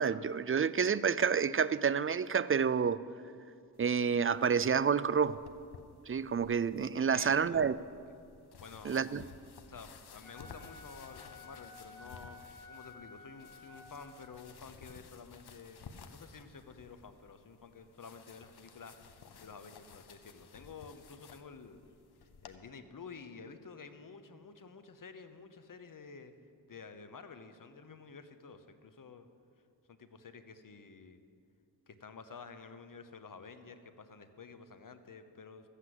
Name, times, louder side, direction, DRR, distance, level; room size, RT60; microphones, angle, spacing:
voice 1, 0.0-3.0 3.8-5.4 6.1-7.8 8.8-9.2, right 6 dB, 35° right, 0.4 m, -29 dB
sound 1, 3.7-22.6, left 6 dB, 85° left, 0.8 m, -56 dB
voice 2, 7.1-7.7 8.0-8.1 8.6-8.9 9.7-12.4 12.7-15.8 16.1-21.8 22.2-26.3 26.7-29.3 29.9-31.2 31.9-35.7, left 5 dB, 55° left, 1.0 m, -51 dB
Wind instrument woodwind instrument, 10.2-14.5, left 3 dB, 10° left, 3.1 m, -53 dB
13.5 x 8.3 x 7.7 m
cardioid pair, 65°, 38 cm